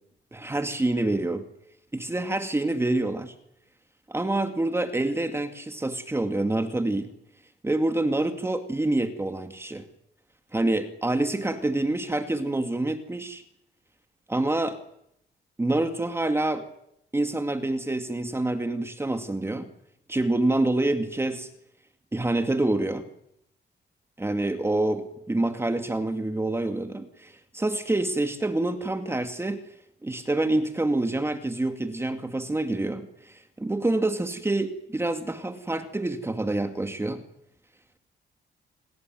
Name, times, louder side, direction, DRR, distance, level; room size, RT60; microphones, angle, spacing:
voice 1, 0.3-1.4 1.9-3.3 4.1-7.1 7.6-9.8 10.5-13.4 14.3-14.8 15.6-16.7 17.1-19.7 20.1-21.5 22.1-23.0 24.2-25.0 25.3-29.6 30.0-37.2, right 2 dB, 15° right, 7 dB, 2.2 m, -27 dB
28.5 x 18.5 x 9.4 m, 0.76 s
cardioid pair, 145°, 19 cm